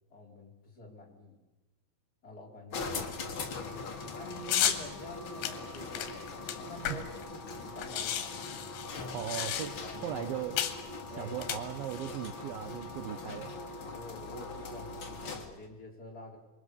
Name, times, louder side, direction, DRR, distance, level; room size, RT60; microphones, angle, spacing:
voice 1, 0.1-1.4 2.2-6.2 6.6-8.5 8.9-9.2 9.8-10.3 11.1-11.4 13.1-13.3 13.8-16.4, left 2 dB, 20° left, -1 dB, 4.1 m, -48 dB
sound 1, 2.7-15.6, left 3 dB, 65° left, 1.2 m, -41 dB
sound 2, 4.5-4.8 5.4-7.2 7.5-7.6 7.8-9.9 10.6-10.8 11.4-12.1, left 10 dB, 85° left, 4.0 m, -33 dB
voice 2, 9.1-9.7 10.0-10.6 11.2-13.5, right 10 dB, 80° right, 8 dB, 2.1 m, -37 dB
27.5 x 22.5 x 6.9 m, 1.1 s
omnidirectional pair, 5.4 m